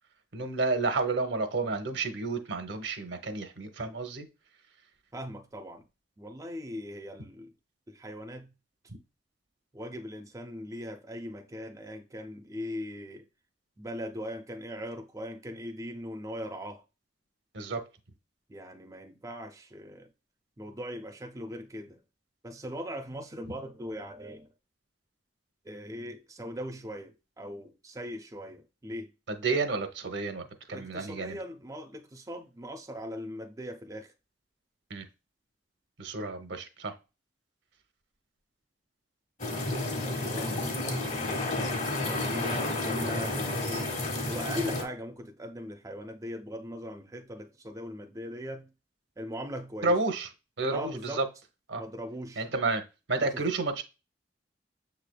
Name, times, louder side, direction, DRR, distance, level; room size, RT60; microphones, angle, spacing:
voice 1, 0.3-4.3 17.5-17.8 29.3-31.4 34.9-35.0 36.0-36.9 40.4-40.6 49.8-50.3 50.6-51.2 51.7-51.8 52.4-52.8 53.1-53.8, right 3 dB, 75° right, 0.8 m, -30 dB
voice 2, 5.1-5.9 6.2-7.5 7.9-8.5 9.7-13.3 13.8-16.8 18.5-20.1 20.6-22.0 22.4-24.5 25.6-29.1 30.7-34.1 40.0-41.1 42.0-43.9 44.2-48.7 49.2-50.0 50.7-51.2 51.8-52.4 53.2-53.4, equal, 20° right, 0.5 m, -40 dB
sound 1, 39.4-44.8, left 2 dB, 40° left, 1.3 m, -31 dB
6.6 x 3.3 x 2.2 m
head